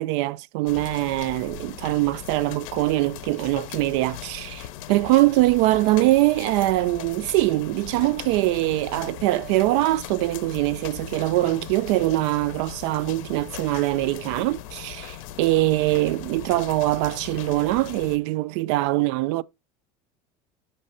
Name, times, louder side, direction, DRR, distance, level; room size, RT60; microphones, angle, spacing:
voice 1, 0.0-19.4, right 18 dB, 60° right, 0.4 m, -23 dB
sound 1, 0.7-18.2, left 11 dB, 85° left, 0.7 m, -39 dB
6.5 x 3.3 x 5.5 m
cardioid pair, 180°, 17 cm